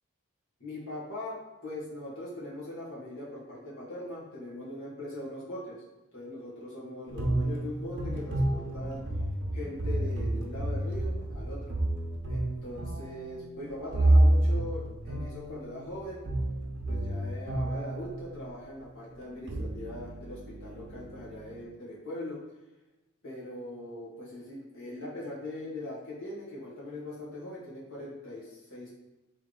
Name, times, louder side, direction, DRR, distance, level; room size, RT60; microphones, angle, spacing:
voice 1, 0.6-5.8 6.1-9.0 9.5-11.8 12.3-16.2 16.8-22.4 23.2-28.9, left 1 dB, 65° left, -6 dB, 1.5 m, -41 dB
sound 1, 7.1-18.6 19.2-21.6, right 1 dB, 55° right, 0.8 m, -29 dB
3.2 x 3.2 x 3.9 m, 1.1 s
head